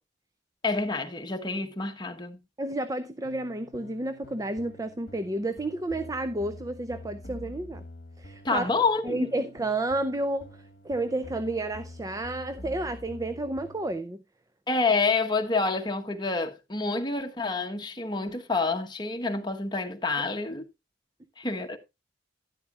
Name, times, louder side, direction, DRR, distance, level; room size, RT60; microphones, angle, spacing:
voice 1, 0.6-2.4 8.4-9.3 14.7-20.6 21.4-21.8, left 3 dB, 25° left, 1.2 m, -28 dB
voice 2, 2.6-7.8 8.2-8.7 9.0-14.2, right 2 dB, 20° right, 0.5 m, -31 dB
sound 1, 3.2-13.9, left 1 dB, 50° left, 1.4 m, -47 dB
11.5 x 10.5 x 2.4 m
head